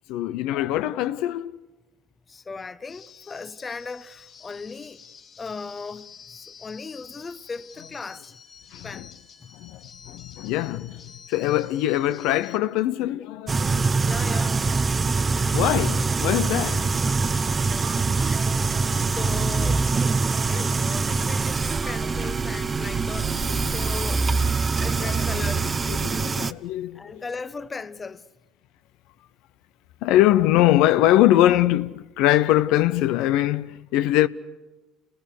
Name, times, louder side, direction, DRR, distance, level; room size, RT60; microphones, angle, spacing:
voice 1, 0.1-1.6 8.7-9.1 9.5-14.0 15.5-16.9 23.3-24.0 24.8-25.6 25.8-27.2 30.0-34.3, left 14 dB, 70° left, 0.7 m, -23 dB
voice 2, 2.3-5.0 5.4-8.4 8.8-9.1 9.4-9.5 14.0-14.6 15.4-15.6 18.9-19.9 20.5-24.4 24.8-25.8 26.9-28.3, left 4 dB, 25° left, 1.0 m, -37 dB
sound 1, 2.9-12.6, left 6 dB, 50° left, 2.5 m, -48 dB
sound 2, 13.5-26.5, right 4 dB, 25° right, 0.8 m, -24 dB
sound 3, 14.2-22.6, right 7 dB, 45° right, 1.9 m, -42 dB
29.5 x 20.5 x 6.7 m
supercardioid pair, 85°, 0 cm